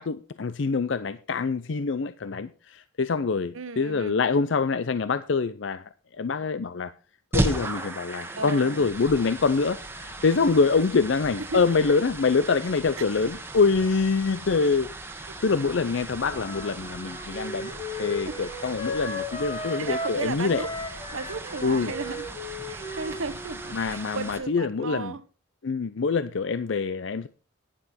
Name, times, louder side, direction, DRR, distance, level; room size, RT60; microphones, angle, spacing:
voice 1, 0.0-5.8 6.2-6.9 7.3-14.9 15.4-17.7 18.0-20.7 21.6-21.9 23.7-25.2 25.6-27.3, left 4 dB, 65° left, 0.5 m, -25 dB
voice 2, 3.5-4.2 8.3-8.8 11.4-11.6 13.0-13.1 18.2-18.4 19.8-20.7 21.1-22.4 22.7-25.2, right 4 dB, 85° right, 1.0 m, -35 dB
sound 1, 7.3-24.4, right 1 dB, 10° right, 1.6 m, -36 dB
Wind instrument woodwind instrument, 16.2-20.2 20.5-24.4, left 1 dB, 30° left, 2.2 m, -36 dB
11.5 x 10.0 x 4.2 m
head